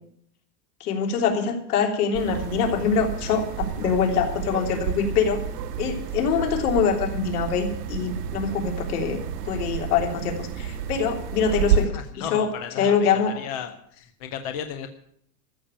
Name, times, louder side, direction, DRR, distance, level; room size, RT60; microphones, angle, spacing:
voice 1, 0.8-5.4 5.8-9.2 9.4-12.5 12.8-13.3, left 6 dB, 65° left, 2 dB, 3.5 m, -24 dB
sound 1, 2.1-11.9, right 8 dB, 70° right, 1.5 m, -30 dB
voice 2, 11.8-12.9 13.3-14.9, left 8 dB, 25° left, 7 dB, 0.5 m, -34 dB
14.0 x 7.1 x 9.9 m, 0.67 s
supercardioid pair, 175°, 49 cm